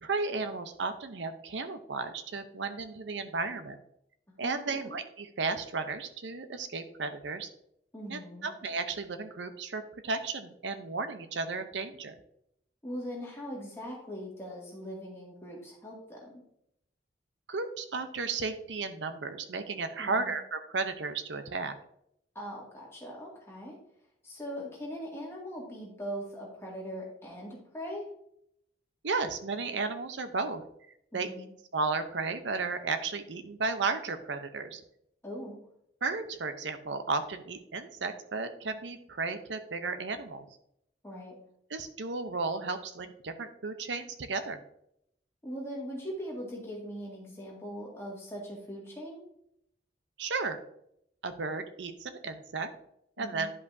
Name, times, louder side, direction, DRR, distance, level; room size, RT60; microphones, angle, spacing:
voice 1, 0.0-3.8 4.4-7.5 8.1-12.1 17.5-21.8 29.0-30.6 31.1-31.3 31.7-34.8 36.0-40.5 41.7-44.6 50.2-50.6 51.2-52.7 53.2-53.5, right 4 dB, 85° right, 9 dB, 0.7 m, -34 dB
voice 2, 4.4-5.0 7.9-8.5 12.8-16.3 20.0-20.3 22.3-23.7 24.2-28.0 31.1-31.5 35.2-35.6 41.0-41.3 45.4-49.2 53.2-53.5, equal, 15° left, -3 dB, 2.1 m, -41 dB
10.5 x 5.4 x 2.7 m, 0.75 s
head